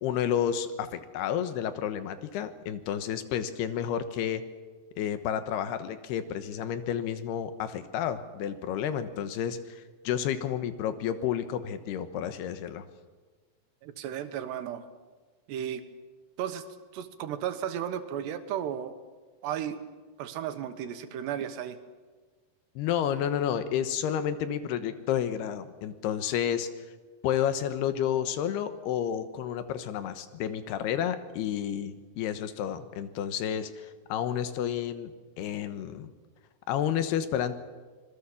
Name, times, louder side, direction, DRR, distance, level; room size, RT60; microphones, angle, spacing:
voice 1, 0.0-4.4 5.0-12.8 22.8-26.7 27.2-36.1 36.7-37.5, left 9 dB, 75° left, 11 dB, 3.2 m, -31 dB
voice 2, 13.8-14.9 15.5-15.9 16.4-16.6 16.9-19.0 19.4-19.8 20.2-21.8, right 10 dB, 85° right, 9 dB, 3.4 m, -34 dB
26.0 x 21.0 x 7.3 m, 1.4 s
omnidirectional pair, 4.8 m